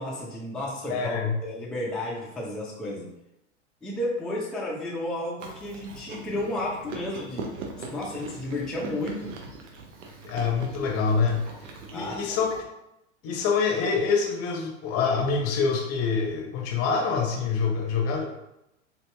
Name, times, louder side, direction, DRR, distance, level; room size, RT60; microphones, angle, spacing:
voice 1, 0.0-3.1 3.8-7.5 7.9-9.3 11.9-12.6, left 1 dB, ahead, -5 dB, 0.5 m, -32 dB
voice 2, 0.9-1.4 10.2-11.5 11.9-12.5 13.2-18.2, left 5 dB, 40° left, 1 dB, 0.8 m, -25 dB
Chewing mastication, 5.4-12.6, right 3 dB, 75° right, 0.8 m, -41 dB
4.0 x 2.7 x 2.2 m, 0.88 s
hypercardioid pair, 100°, 36 cm